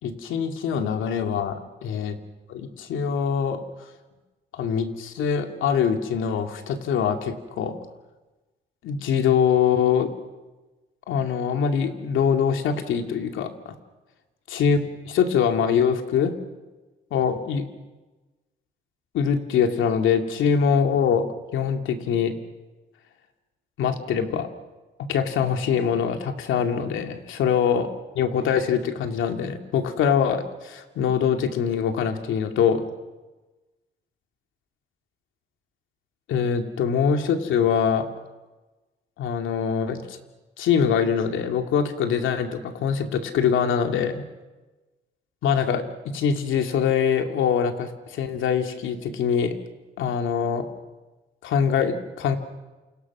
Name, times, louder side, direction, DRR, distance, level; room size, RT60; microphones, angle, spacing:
voice 1, 0.0-2.2 2.5-3.6 4.5-7.8 8.8-10.1 11.1-13.8 14.5-16.4 17.1-17.7 19.1-21.2 21.5-22.3 23.8-24.5 25.1-27.9 28.1-32.9 36.3-38.1 39.2-40.2 40.6-44.2 45.4-45.8 46.1-49.5 50.0-50.7 51.4-52.4, left 7 dB, 80° left, 5 dB, 2.7 m, -23 dB
28.5 x 27.5 x 6.2 m, 1.2 s
cardioid pair, 90°, 20 cm